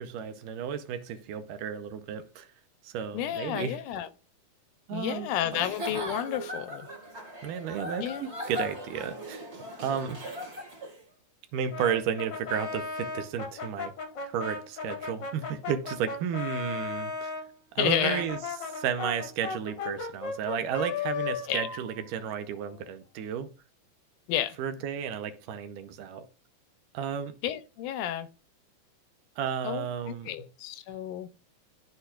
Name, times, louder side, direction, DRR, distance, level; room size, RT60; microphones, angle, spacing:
voice 1, 0.0-2.5 2.8-3.8 4.9-5.7 7.4-9.5 9.8-10.2 11.5-13.9 14.2-17.3 17.8-23.5 24.6-26.3 26.9-27.4 29.4-30.3, right 8 dB, 80° right, 2.4 m, -33 dB
voice 2, 3.1-4.1 4.9-6.9 8.0-8.3 17.8-18.2 21.5-21.7 24.3-24.6 27.4-28.3 29.6-31.3, left 12 dB, 80° left, 2.0 m, -31 dB
Giggle / Chuckle chortle, 5.5-11.0, equal, 30° right, 1.3 m, -39 dB
Brass instrument, 11.7-17.5 18.1-22.8, left 5 dB, 55° left, 1.2 m, -36 dB
13.5 x 4.5 x 2.4 m
omnidirectional pair, 3.8 m